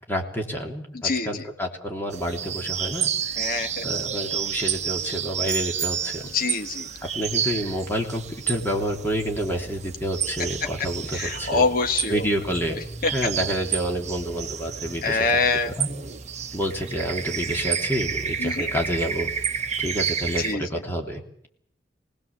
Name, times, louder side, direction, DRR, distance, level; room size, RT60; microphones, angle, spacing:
voice 1, 0.1-3.1 3.8-6.2 7.1-11.7 12.1-12.8 13.1-15.4 15.8-15.9 16.5-19.3 19.8-21.5, equal, 10° left, 0 dB, 3.3 m, -28 dB
sound 1, 2.1-20.5, right 7 dB, 40° right, 1.2 m, -30 dB
voice 2, 3.4-3.7 6.3-6.8 11.2-12.1 15.0-15.7 18.4-18.7 20.4-20.6, left 4 dB, 55° left, 6 dB, 1.3 m, -24 dB
sound 2, 5.4-6.5, right 7 dB, 15° right, 2.7 m, -31 dB
25.0 x 19.5 x 7.4 m, 0.69 s
head